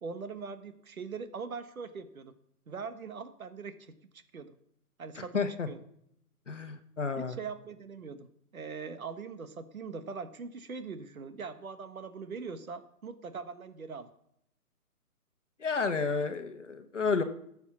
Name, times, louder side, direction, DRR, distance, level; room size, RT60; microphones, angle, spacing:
voice 1, 0.0-2.3 2.7-4.0 4.3-4.6 5.0-5.4 5.7-5.8 7.2-8.3 8.5-14.1, right 5 dB, 65° right, 10 dB, 1.3 m, -41 dB
voice 2, 5.1-5.7 6.5-7.4 15.6-17.2, left 5 dB, 50° left, 8 dB, 1.2 m, -31 dB
14.5 x 7.3 x 6.0 m, 0.73 s
hypercardioid pair, 175°, 46 cm